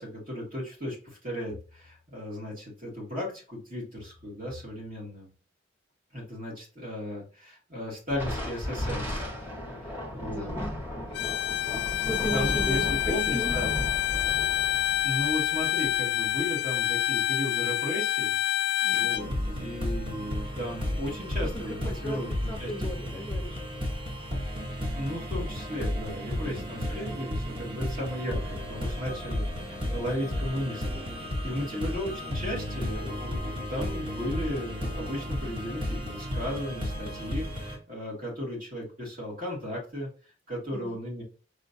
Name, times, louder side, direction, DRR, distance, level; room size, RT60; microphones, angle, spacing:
voice 1, 0.0-5.3 6.1-9.1 9.8-10.5 12.2-13.7 15.0-22.3 22.6-22.7 24.9-40.1 40.5-41.2, left 1 dB, 45° right, -4 dB, 2.4 m, -35 dB
Thunder, 8.1-16.9, left 1 dB, 10° right, 1.4 m, -35 dB
voice 2, 10.3-10.7 12.0-13.6 18.8-19.3 21.4-23.6 26.4-26.8 31.7-32.0 40.7-41.0, equal, 10° left, 1 dB, 0.7 m, -37 dB
Bowed string instrument, 11.1-19.3, left 13 dB, 60° left, 0.3 m, -27 dB
sound 1, 19.2-37.8, left 1 dB, 30° right, 1.2 m, -33 dB
5.3 x 3.6 x 2.7 m, 0.37 s
head